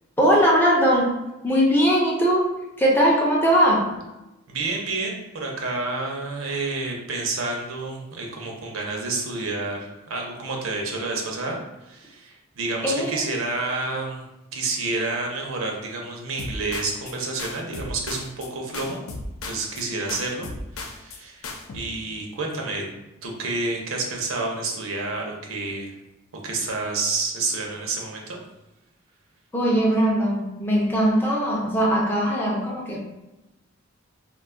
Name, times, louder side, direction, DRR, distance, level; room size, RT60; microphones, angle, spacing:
voice 1, 0.2-4.0 12.8-13.2 29.5-33.0, equal, 10° left, -3 dB, 0.4 m, -20 dB
voice 2, 4.5-14.2 14.5-19.0 19.4-20.5 20.8-22.9 23.2-25.9 26.4-28.4, right 3 dB, 80° right, 0 dB, 0.6 m, -29 dB
sound 1, 16.4-17.1 17.4-18.5 18.7-19.8 20.1-21.2 21.4-21.8, left 3 dB, 85° left, 0.4 m, -35 dB
2.5 x 2.3 x 3.6 m, 0.98 s
head